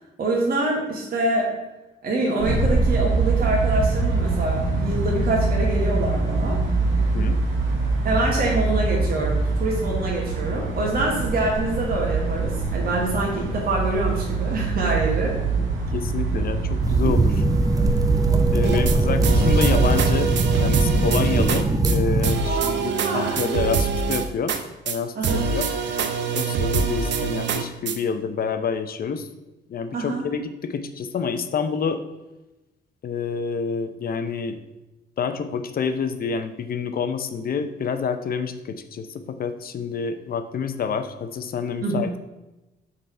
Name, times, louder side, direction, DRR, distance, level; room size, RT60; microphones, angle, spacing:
voice 1, 0.2-1.6 2.0-6.6 8.0-15.4 22.5-23.5 25.1-25.4 29.9-30.2 41.8-42.1, right 2 dB, 50° right, -3 dB, 1.2 m, -25 dB
sound 1, 2.4-20.0, right 3 dB, 80° right, 1.9 m, -24 dB
voice 2, 7.0-7.4 15.6-17.4 18.5-24.5 24.8-25.7 26.3-29.3 29.7-32.0 33.0-34.6 35.2-42.2, left 6 dB, 50° left, 9 dB, 0.6 m, -28 dB
sound 2, 16.8-22.4, right 2 dB, 20° right, 0.5 m, -21 dB
sound 3, 18.6-19.0 19.2-21.6 21.9-22.0 22.2-24.6 24.9-25.0 25.2-28.0, right 5 dB, 65° right, 0.7 m, -25 dB
5.5 x 4.0 x 4.3 m, 1.0 s
cardioid pair, 90°, 20 cm